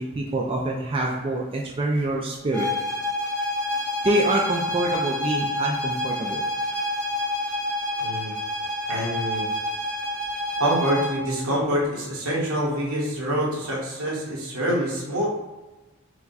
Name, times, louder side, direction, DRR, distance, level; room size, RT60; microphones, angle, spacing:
voice 1, 0.0-2.7 4.0-6.4, right 2 dB, 25° right, -1 dB, 0.3 m, -25 dB
sound 1, 2.5-11.2, left 1 dB, 5° left, 0.7 m, -28 dB
voice 2, 8.0-8.3 8.9-9.4 10.6-15.3, equal, 75° right, -4 dB, 1.3 m, -26 dB
4.7 x 2.2 x 3.9 m, 1.1 s
head